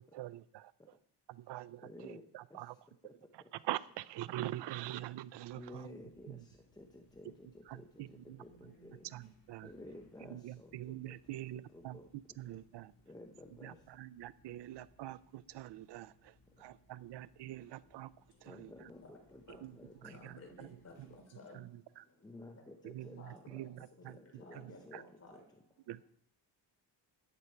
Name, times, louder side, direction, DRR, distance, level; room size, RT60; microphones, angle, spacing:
voice 1, 0.1-0.7 1.3-2.7 3.3-5.9 6.3-6.4 7.7-8.4 9.0-9.7 10.3-12.0 12.4-12.9 13.6-18.1 18.4-18.7 19.6-19.7 20.0-20.7 21.0-21.1 21.5-21.7 22.0-22.1 22.8-24.2 24.5-24.6 24.9-25.0 25.9-26.0, right 14 dB, 70° right, 17 dB, 0.5 m, -45 dB
voice 2, 1.8-2.7 3.4-3.5 5.5-9.1 9.6-11.2 11.5-12.4 13.0-13.9 18.4-20.1 22.2-23.7 24.0-25.0 25.3-25.4, left 1 dB, 10° left, 3 dB, 0.8 m, -54 dB
sound 1, 5.4-21.2, equal, 55° left, 4.1 m, -67 dB
voice 3, 19.0-22.7 23.2-26.0, left 2 dB, 35° left, 3 dB, 3.5 m, -58 dB
13.5 x 9.9 x 4.5 m, 0.66 s
cardioid pair, 150°, 43 cm